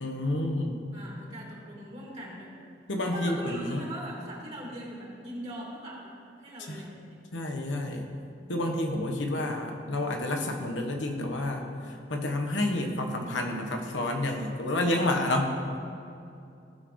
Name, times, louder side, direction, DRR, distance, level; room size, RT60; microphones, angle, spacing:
voice 1, 0.0-0.8 2.9-3.8 6.7-6.8 7.3-8.1 8.5-11.6 12.1-15.8, left 1 dB, 90° left, 3 dB, 1.2 m, -29 dB
voice 2, 0.9-2.5 3.0-7.1, right 1 dB, 35° right, -4 dB, 2.3 m, -41 dB
16.5 x 6.2 x 3.2 m, 2.6 s
head